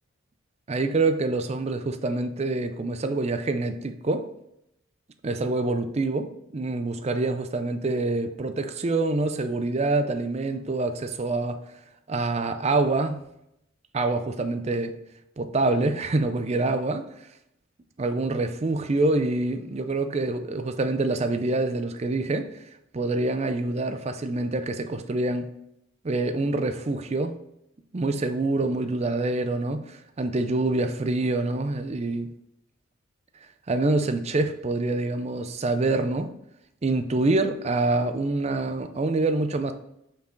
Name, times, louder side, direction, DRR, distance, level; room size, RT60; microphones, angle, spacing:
voice 1, 0.7-4.3 5.2-11.6 12.1-13.2 13.9-14.9 15.4-17.1 18.0-22.6 22.9-25.5 26.0-27.3 27.9-32.3 33.7-36.3 36.8-39.7, right 2 dB, 30° right, 8 dB, 0.4 m, -26 dB
5.6 x 4.6 x 3.8 m, 0.80 s
head